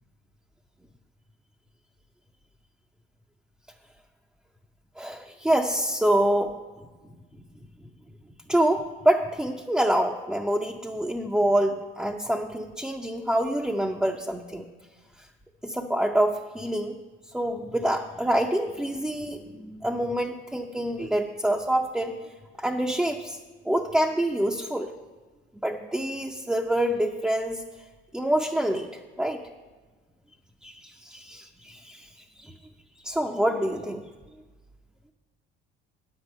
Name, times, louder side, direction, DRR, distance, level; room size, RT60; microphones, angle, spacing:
voice 1, 5.0-6.6 8.5-14.7 15.2-15.3 15.6-17.0 17.3-22.1 22.6-23.4 23.6-24.9 25.6-27.6 28.1-29.4 30.6-32.1 32.4-32.6 33.0-34.1, right 1 dB, 5° right, 1 dB, 0.6 m, -26 dB
9.5 x 8.0 x 5.6 m, 1.4 s
cardioid pair, 110°, 20 cm